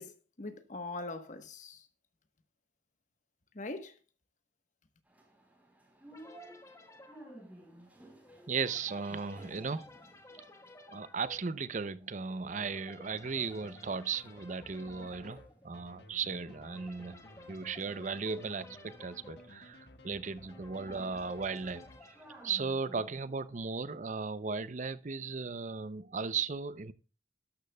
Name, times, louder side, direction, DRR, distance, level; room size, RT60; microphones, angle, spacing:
voice 1, 0.0-1.9 3.5-4.0, left 2 dB, 45° left, 1.2 m, -42 dB
sound 1, 5.1-12.2 12.6-13.6 13.8-23.4, right 1 dB, 10° right, 3.8 m, -57 dB
sound 2, 6.1-23.3, left 2 dB, 15° left, 1.3 m, -56 dB
voice 2, 8.5-9.9 10.9-17.2 17.5-21.8 22.4-26.9, right 5 dB, 45° right, 0.6 m, -36 dB
sound 3, 13.1-22.4, left 2 dB, 70° left, 1.6 m, -56 dB
13.0 x 12.0 x 2.3 m
head